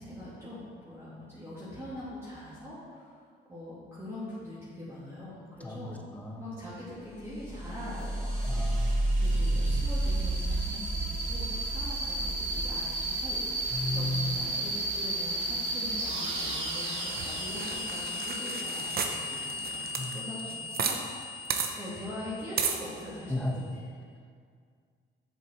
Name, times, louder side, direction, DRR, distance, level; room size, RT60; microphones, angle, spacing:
voice 1, 0.0-3.2 3.5-6.0 6.4-8.7 9.2-23.6, left 1 dB, 15° right, -11 dB, 2.3 m, -43 dB
voice 2, 5.6-6.5 8.4-9.2 13.7-14.4 20.0-20.2 23.3-23.6, left 1 dB, 5° left, 0 dB, 1.1 m, -34 dB
sound 1, 7.2-23.5, right 1 dB, 85° right, 1.9 m, -32 dB
sound 2, 17.0-21.0 21.2-21.3 21.5-21.7 22.6-22.8, right 6 dB, 50° right, 0.8 m, -33 dB
7.4 x 6.8 x 4.3 m, 2.1 s
cardioid pair, 90°, 20 cm